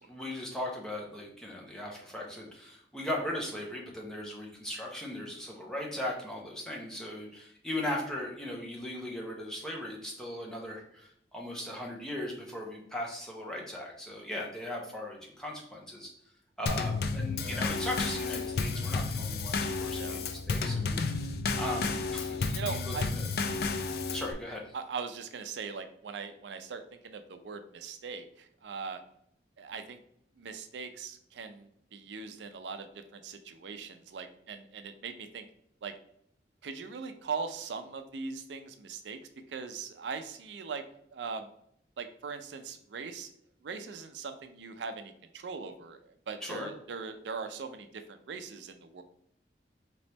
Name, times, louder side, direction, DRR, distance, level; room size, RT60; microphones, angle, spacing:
voice 1, 0.1-16.1 16.6-21.2 21.6-23.3 24.1-24.7 46.4-46.7, left 1 dB, 5° left, -2 dB, 0.7 m, -38 dB
Drum kit / Snare drum / Bass drum, 16.7-24.3, left 4 dB, 60° left, 0.3 m, -32 dB
voice 2, 22.5-23.1 24.7-29.0 29.6-30.0 30.4-35.4 35.8-35.9 36.6-39.2 39.5-40.8 41.1-41.5 42.0-43.3 43.6-46.0 46.3-49.0, right 5 dB, 85° right, 8 dB, 0.4 m, -40 dB
4.0 x 3.0 x 3.4 m, 0.70 s
head